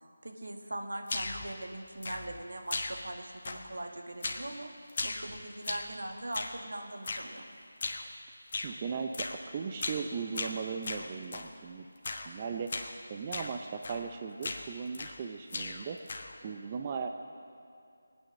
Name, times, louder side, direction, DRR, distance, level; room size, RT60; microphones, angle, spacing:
voice 1, 0.2-4.7 5.0-7.4, right 1 dB, 75° right, 3 dB, 1.7 m, -41 dB
sound 1, 1.1-1.5 2.0-2.4 2.7-3.2 3.4-3.8 4.2-4.5 4.9-6.0 6.3-6.6 7.0-7.3 7.8-8.1 8.5-8.7 9.1-9.4 9.8-10.1 10.3-11.5 12.0-12.3 12.7-12.9 13.3-13.5 13.8-14.1 14.4-15.2 15.5-16.4, left 3 dB, 45° left, 1.2 m, -37 dB
voice 2, 8.6-11.9 12.2-16.0 16.4-17.1, right 6 dB, 25° right, 5 dB, 0.6 m, -37 dB
19.5 x 9.2 x 6.4 m, 2.4 s
figure-of-eight pair, 165°, 0 cm